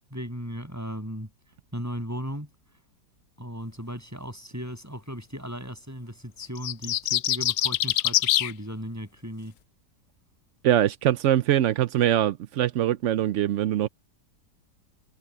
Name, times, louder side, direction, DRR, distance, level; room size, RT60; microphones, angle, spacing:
voice 1, 0.1-1.3 1.7-2.5 3.4-9.5, equal, 10° right, 7.8 m, -36 dB
sound 1, 6.4-8.5, left 13 dB, 75° left, 0.7 m, -24 dB
voice 2, 10.6-13.9, right 12 dB, 75° right, 0.6 m, -23 dB
omnidirectional pair, 1.9 m